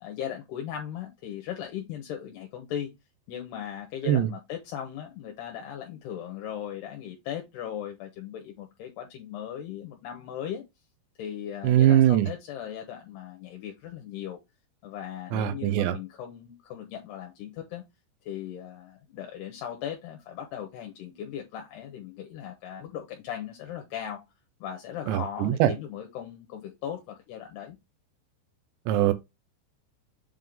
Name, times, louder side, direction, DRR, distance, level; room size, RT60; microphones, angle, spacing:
voice 1, 0.0-2.9 3.3-10.6 11.2-14.4 14.8-17.8 18.3-24.2 24.6-27.8, left 9 dB, 75° left, 2.8 m, -38 dB
voice 2, 11.6-12.3 15.3-16.0 25.1-25.7 28.9-29.1, right 12 dB, 80° right, 2.9 m, -21 dB
7.7 x 3.6 x 3.6 m
omnidirectional pair, 5.3 m